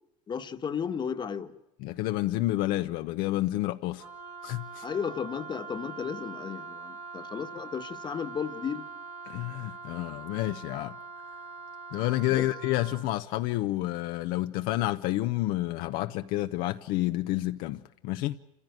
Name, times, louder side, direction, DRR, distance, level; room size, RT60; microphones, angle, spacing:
voice 1, 0.3-1.5 4.8-8.9 12.3-12.5, left 7 dB, 30° left, 1.4 m, -34 dB
voice 2, 1.8-4.1 4.4-4.9 9.3-11.0 11.9-18.4, left 16 dB, 65° left, 0.8 m, -29 dB
Wind instrument woodwind instrument, 4.0-13.1, right 4 dB, 45° right, 1.9 m, -43 dB
27.0 x 16.0 x 9.3 m
supercardioid pair, 115°, 16 cm